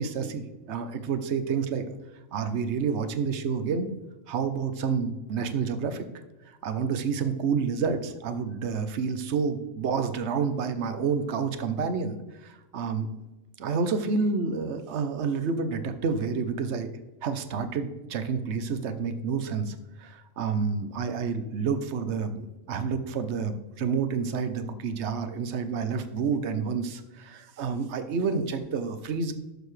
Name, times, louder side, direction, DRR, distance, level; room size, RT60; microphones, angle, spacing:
voice 1, 0.0-1.9 2.3-3.9 4.3-6.0 6.6-13.2 13.6-16.9 17.2-29.3, right 5 dB, 65° right, 9 dB, 1.1 m, -29 dB
11.5 x 6.8 x 3.3 m, 1.0 s
omnidirectional pair, 1.3 m